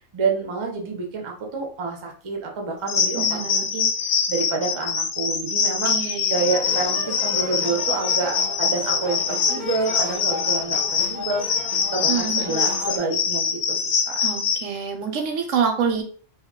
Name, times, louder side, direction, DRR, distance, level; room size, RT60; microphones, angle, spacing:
voice 1, 0.1-3.9 4.3-6.0 6.3-13.8 14.1-14.2, right 4 dB, 35° right, 1 dB, 0.4 m, -28 dB
sound 1, 2.9-14.6, left 6 dB, 85° left, 0.9 m, -24 dB
voice 2, 3.1-3.7 5.9-6.4 12.1-12.6 14.2-16.0, right 6 dB, 85° right, 5 dB, 0.9 m, -26 dB
sound 2, 6.4-13.0, left 3 dB, 50° left, 0.6 m, -34 dB
2.3 x 2.2 x 3.6 m, 0.42 s
omnidirectional pair, 1.3 m